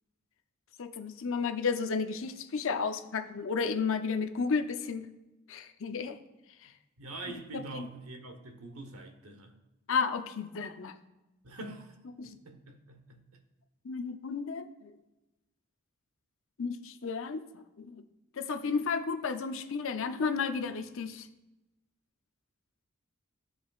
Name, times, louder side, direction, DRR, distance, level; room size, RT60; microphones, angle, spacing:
voice 1, 0.8-5.1 5.5-6.2 6.6-6.7 7.5-7.9 9.9-11.0 12.2-12.4 13.8-14.9 16.6-18.0 18.4-21.3, left 5 dB, 60° left, 0.6 m, -33 dB
voice 2, 7.0-9.6 11.4-12.0 12.2-13.4, right 2 dB, 80° right, 1.0 m, -45 dB
14.0 x 5.1 x 2.4 m
head